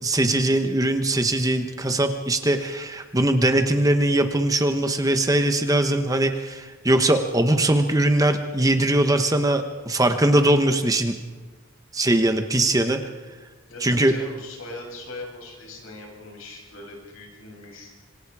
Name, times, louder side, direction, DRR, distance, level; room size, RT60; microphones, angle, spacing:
voice 1, 0.0-11.2 11.9-13.0 13.8-14.1, right 1 dB, 15° right, 6 dB, 1.2 m, -21 dB
voice 2, 13.7-18.0, left 2 dB, 70° left, 0 dB, 7.8 m, -40 dB
26.5 x 26.5 x 4.9 m, 1.4 s
head